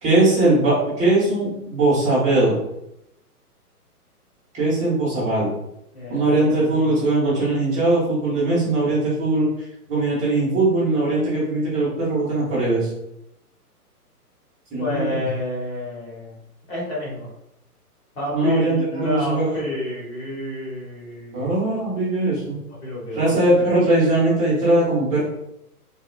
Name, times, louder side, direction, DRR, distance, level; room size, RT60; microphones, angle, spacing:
voice 1, 0.0-2.6 4.5-5.5 6.1-9.5 9.9-12.9 14.7-15.2 18.3-19.7 21.3-22.6 23.1-25.2, right 2 dB, 15° right, -10 dB, 1.2 m, -20 dB
voice 2, 5.9-7.0 14.8-16.4 16.7-17.3 18.1-21.6 22.8-23.4, left 2 dB, 40° left, -4 dB, 1.3 m, -29 dB
3.7 x 2.7 x 2.3 m, 0.83 s
figure-of-eight pair, 130°, 46 cm